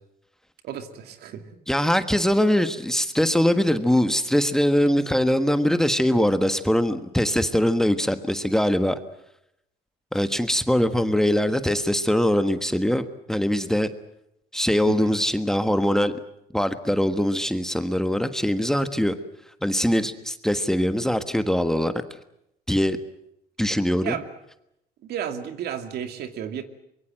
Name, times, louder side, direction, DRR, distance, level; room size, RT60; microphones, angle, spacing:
voice 1, 0.6-1.4 14.9-15.1 24.0-24.3 25.1-26.6, right 9 dB, 70° right, 9 dB, 2.5 m, -32 dB
voice 2, 1.7-9.0 10.1-13.9 14.5-16.1 16.5-19.1 19.6-21.9 22.7-23.0 23.6-24.2, equal, 5° left, 10 dB, 1.4 m, -22 dB
24.5 x 23.0 x 7.7 m, 0.78 s
cardioid pair, 110°, 17 cm